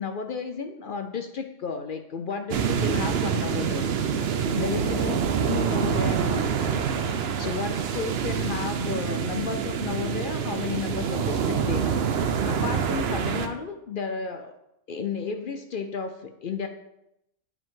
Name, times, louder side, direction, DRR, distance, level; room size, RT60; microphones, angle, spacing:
voice 1, 0.0-14.5 14.9-16.7, left 5 dB, 60° left, 6 dB, 0.6 m, -33 dB
sound 1, 2.5-13.5, right 7 dB, 60° right, 0.8 m, -26 dB
9.1 x 5.2 x 3.7 m, 0.83 s
omnidirectional pair, 1.3 m